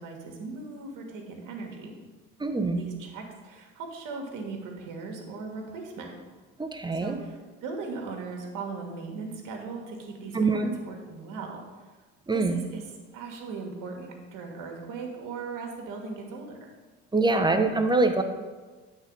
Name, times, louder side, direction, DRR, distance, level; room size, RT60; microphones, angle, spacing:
voice 1, 0.0-1.9 2.7-6.1 6.9-11.6 12.3-12.8 13.1-16.7, right 4 dB, 65° right, 2 dB, 1.6 m, -38 dB
voice 2, 2.4-2.8 6.6-7.2 10.3-10.7 12.3-12.6 17.1-18.2, right 3 dB, 15° right, 6 dB, 0.7 m, -24 dB
8.1 x 3.9 x 5.3 m, 1.3 s
supercardioid pair, 80°, 34 cm